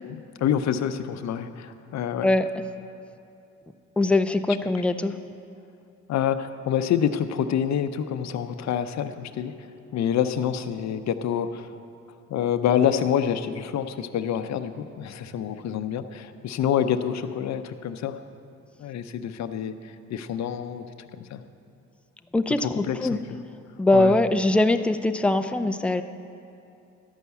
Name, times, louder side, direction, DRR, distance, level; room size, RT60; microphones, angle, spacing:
voice 1, 0.0-2.3 6.1-9.7 9.9-11.8 12.3-18.2 18.8-20.9 21.2-21.4 22.6-23.2 23.9-24.2, left 9 dB, 65° left, 10 dB, 0.7 m, -27 dB
voice 2, 4.0-5.1 22.3-23.2 23.8-26.0, left 2 dB, 5° left, 7 dB, 0.4 m, -22 dB
12.0 x 5.6 x 8.2 m, 2.7 s
cardioid pair, 90°, 30 cm